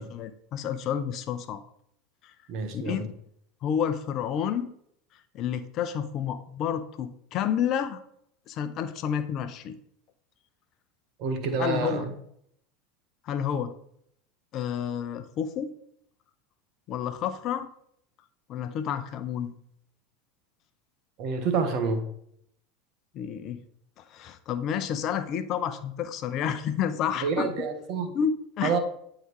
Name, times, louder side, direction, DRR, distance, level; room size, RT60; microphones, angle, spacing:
voice 1, 0.0-1.6 2.2-2.3 2.7-3.1 3.6-4.7 5.3-8.0 8.5-9.8 11.6-12.0 13.3-13.7 14.5-15.7 16.9-17.7 18.5-19.5 23.1-23.6 24.0-27.5 28.1-28.8, left 8 dB, 50° left, 12 dB, 0.6 m, -30 dB
voice 2, 2.5-3.0 11.2-12.1 21.2-22.0 27.2-28.2 28.6-28.8, right 5 dB, 55° right, 7 dB, 1.3 m, -28 dB
9.3 x 3.9 x 4.7 m, 0.70 s
hypercardioid pair, 85°, 0 cm